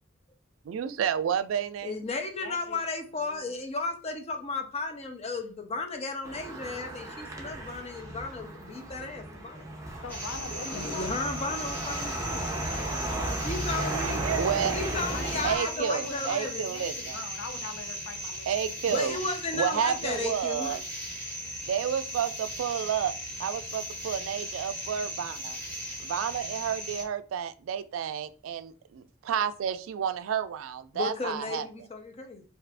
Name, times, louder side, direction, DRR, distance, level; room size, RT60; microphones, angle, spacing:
voice 1, 0.7-2.0 10.5-10.6 13.8-14.8 15.1-17.2 18.5-19.2 19.5-20.8 21.6-23.1 23.4-25.6 26.0-31.7, right 8 dB, 90° right, 0.3 m, -31 dB
voice 2, 1.8-9.8 10.6-12.6 13.4-14.2 14.7-16.7 18.9-20.8 30.9-32.4, left 3 dB, 30° left, 0.5 m, -34 dB
voice 3, 2.4-2.8 3.1-3.6 10.0-11.1 15.1-18.5 18.8-19.0 19.7-19.9, left 4 dB, 85° left, 0.5 m, -41 dB
sound 1, 6.2-15.6, right 1 dB, 15° right, 0.6 m, -35 dB
sound 2, 10.1-27.0, equal, 10° left, 1.3 m, -38 dB
2.7 x 2.4 x 3.3 m
head